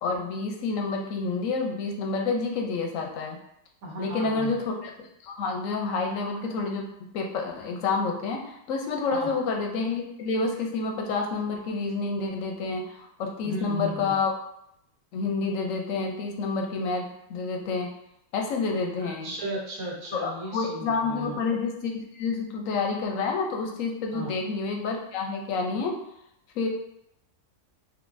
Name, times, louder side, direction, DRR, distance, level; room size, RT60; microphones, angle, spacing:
voice 1, 0.0-3.4 4.0-4.9 5.2-6.9 7.1-14.3 15.1-17.9 18.3-19.3 20.1-26.0 26.6-26.7, left 4 dB, 65° left, 2 dB, 0.8 m, -29 dB
voice 2, 3.8-4.6 9.1-9.3 13.4-14.1 19.0-21.4 24.1-24.3, equal, 65° right, -2 dB, 1.3 m, -35 dB
3.7 x 2.9 x 2.5 m, 0.76 s
omnidirectional pair, 1.7 m